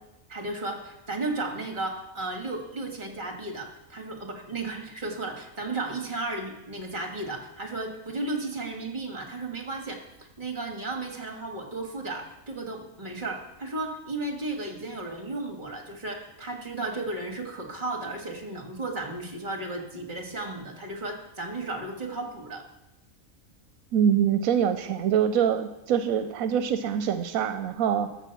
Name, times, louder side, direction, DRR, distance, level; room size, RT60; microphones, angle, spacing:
voice 1, 0.3-22.6, right 2 dB, 35° right, 3 dB, 1.7 m, -34 dB
voice 2, 23.9-28.1, right 8 dB, 85° right, 9 dB, 1.0 m, -24 dB
13.5 x 4.7 x 6.9 m, 0.95 s
omnidirectional pair, 1.4 m